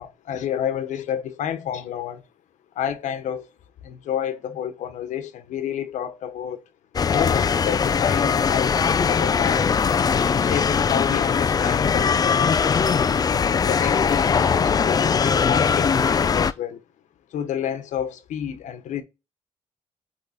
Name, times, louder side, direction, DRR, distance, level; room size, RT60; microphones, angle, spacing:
voice 1, 0.0-2.2 2.7-3.5 3.8-6.6 7.1-10.0 10.4-12.8 13.3-16.8 17.3-19.0, left 9 dB, 80° left, 1.3 m, -30 dB
sound 1, 7.0-16.5, left 6 dB, 30° left, 0.5 m, -20 dB
8.5 x 3.7 x 4.2 m
cardioid pair, 125°, 13 cm